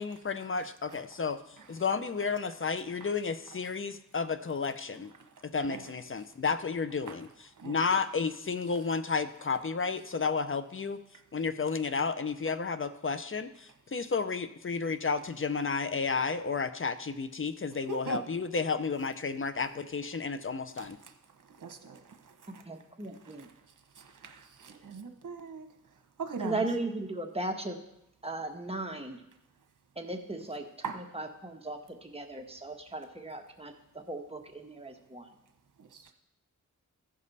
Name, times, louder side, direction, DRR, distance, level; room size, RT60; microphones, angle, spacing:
voice 1, 0.0-1.4 1.7-5.1 5.4-7.3 7.6-11.0 11.3-21.0, left 5 dB, 40° left, 11 dB, 0.7 m, -32 dB
voice 2, 0.5-1.0 1.6-1.8 3.0-3.1 3.5-3.6 5.2-5.9 6.2-6.4 7.0-7.2 7.5-7.8 8.7-8.8 11.1-11.2 17.7-18.2 20.7-22.9 23.1-26.6 30.8-31.1 35.8-36.1, right 5 dB, 65° right, 6 dB, 1.2 m, -43 dB
voice 3, 22.6-23.5 26.4-27.8 28.2-29.2 30.0-30.6 31.1-35.3, right 2 dB, 20° right, 3 dB, 1.3 m, -37 dB
15.0 x 5.3 x 4.1 m, 0.82 s
cardioid pair, 55°, 33 cm